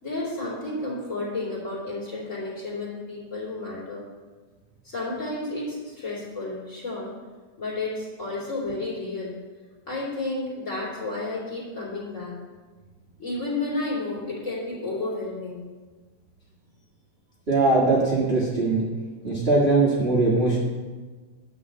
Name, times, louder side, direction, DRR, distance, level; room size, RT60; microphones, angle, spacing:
voice 1, 0.0-4.1 4.8-7.1 7.6-9.4 9.9-12.4 13.2-15.6, left 2 dB, 25° left, -6 dB, 3.0 m, -31 dB
voice 2, 17.5-18.9 19.2-20.6, right 3 dB, 35° right, -6 dB, 0.9 m, -21 dB
9.4 x 5.0 x 7.4 m, 1.3 s
omnidirectional pair, 3.5 m